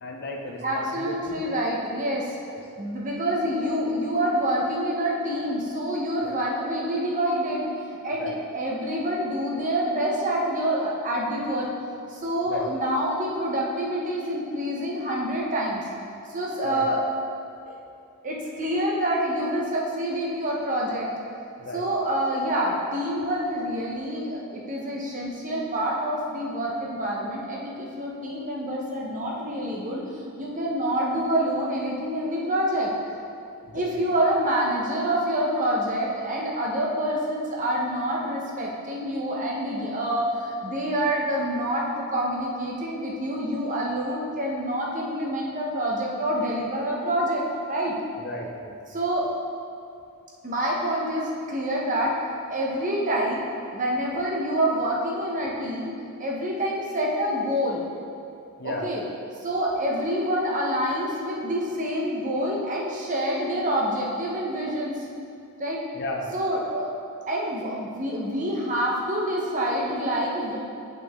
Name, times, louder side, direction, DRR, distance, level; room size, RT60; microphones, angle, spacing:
voice 1, 0.0-1.4 2.5-2.6 6.2-6.4 8.2-8.4 12.5-12.7 16.6-16.9 21.6-21.8 33.6-34.0 48.2-49.0 58.6-58.9 65.9-66.3, left 2 dB, 50° left, 1 dB, 0.7 m, -35 dB
voice 2, 0.6-2.3 2.8-7.7 8.0-11.7 12.1-15.8 16.3-17.0 17.7-17.8 18.2-21.1 21.7-30.0 30.4-32.9 33.7-48.0 48.9-49.3 50.4-52.2 52.5-55.9 56.2-57.8 58.6-59.0 59.4-65.0 65.6-65.8 66.3-66.9 67.3-70.6, equal, 35° right, -3 dB, 1.1 m, -27 dB
7.7 x 5.6 x 3.7 m, 2.5 s
head